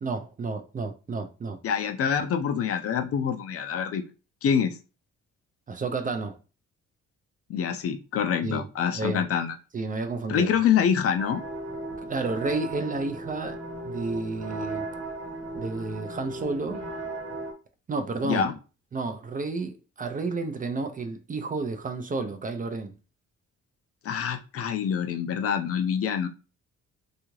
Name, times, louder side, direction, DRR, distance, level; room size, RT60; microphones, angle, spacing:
voice 1, 0.0-1.6 5.7-6.4 8.4-8.7 8.9-9.3 9.7-10.5 12.1-13.6 13.8-14.9 15.6-16.8 17.9-18.5 18.9-22.9, right 3 dB, 30° right, 0.4 m, -31 dB
voice 2, 1.6-4.0 4.4-4.7 7.5-9.6 10.3-11.4 18.2-18.5 24.0-26.3, left 7 dB, 50° left, 0.4 m, -26 dB
sound 1, 11.2-17.5, right 2 dB, 55° right, 1.0 m, -36 dB
2.7 x 2.3 x 3.0 m
cardioid pair, 90°, 30 cm